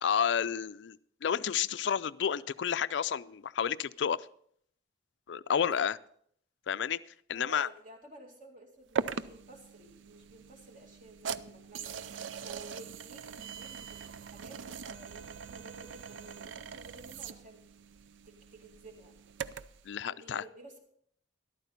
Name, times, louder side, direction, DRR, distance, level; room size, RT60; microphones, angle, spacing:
voice 1, 0.0-4.3 5.3-6.0 6.7-7.0 7.3-7.7 19.9-20.4, left 8 dB, 70° left, 16 dB, 0.4 m, -30 dB
voice 2, 5.5-5.9 7.3-12.0 12.4-17.6 18.2-19.1 20.0-20.8, right 1 dB, 45° right, 2 dB, 2.4 m, -53 dB
sound 1, 9.0-19.8, right 6 dB, 85° right, 0.5 m, -41 dB
13.5 x 12.0 x 4.0 m, 0.65 s
head